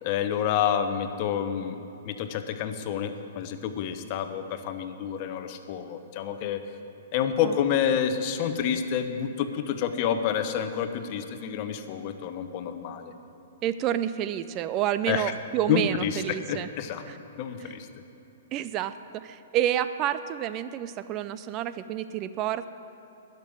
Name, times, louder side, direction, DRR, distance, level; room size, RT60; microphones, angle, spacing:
voice 1, 0.0-1.8 2.0-6.7 7.1-13.1 15.1-15.3 15.7-16.2 16.5-17.0 17.4-17.9, left 8 dB, 45° left, 9 dB, 0.9 m, -28 dB
voice 2, 13.6-16.7 17.1-17.2 17.6-17.7 18.5-22.7, right 11 dB, 35° right, 13 dB, 0.4 m, -29 dB
12.0 x 6.8 x 9.3 m, 3.0 s
hypercardioid pair, 120°, 0 cm